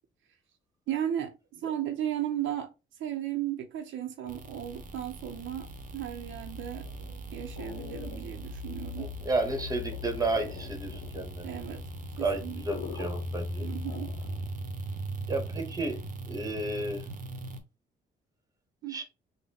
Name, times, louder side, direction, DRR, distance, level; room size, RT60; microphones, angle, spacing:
voice 1, 0.9-2.7 3.0-6.9 7.3-9.1 11.4-11.8 12.2-12.6 13.6-14.1 18.8-19.0, right 11 dB, 75° right, 0.6 m, -35 dB
sound 1, 4.3-17.6, equal, 40° right, 0.8 m, -39 dB
sound 2, 6.8-14.6, left 8 dB, 80° left, 0.7 m, -47 dB
voice 2, 9.0-11.5 12.2-13.7 15.3-16.0 16.3-17.0 18.9-19.0, right 2 dB, 20° right, 1.1 m, -32 dB
3.8 x 2.1 x 3.4 m
cardioid pair, 90°, 20 cm